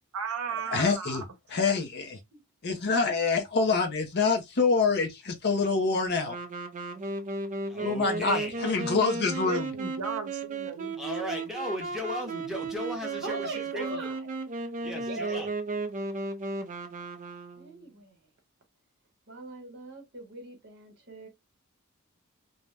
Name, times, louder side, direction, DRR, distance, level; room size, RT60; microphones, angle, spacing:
voice 1, 0.1-1.3 2.3-2.4 9.3-11.4, right 5 dB, 75° right, 0.8 m, -36 dB
voice 2, 0.7-1.2 1.5-2.2 2.6-6.4 7.8-9.7, left 4 dB, 50° left, 0.7 m, -26 dB
Wind instrument woodwind instrument, 6.2-17.9, right 3 dB, 35° right, 0.4 m, -35 dB
voice 3, 7.7-9.0 11.0-13.9 14.8-15.5, left 1 dB, ahead, 0.8 m, -37 dB
voice 4, 13.2-14.3 15.1-15.5 17.6-18.3 19.3-21.3, right 2 dB, 50° right, 1.1 m, -40 dB
2.7 x 2.1 x 3.2 m
head